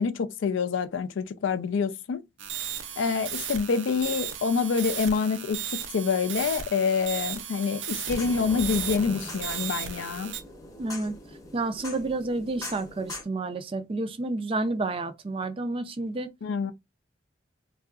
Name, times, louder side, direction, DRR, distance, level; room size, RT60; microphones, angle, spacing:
voice 1, 0.0-2.2 3.0-5.7 5.9-10.3 16.4-16.7, left 5 dB, 80° left, 0.4 m, -27 dB
sound 1, 2.4-10.4, right 8 dB, 80° right, 0.6 m, -35 dB
sound 2, 8.1-13.2, left 2 dB, 20° left, 0.7 m, -41 dB
voice 2, 10.8-11.2 11.5-16.3, right 2 dB, 30° right, 0.4 m, -30 dB
3.6 x 2.3 x 2.3 m
head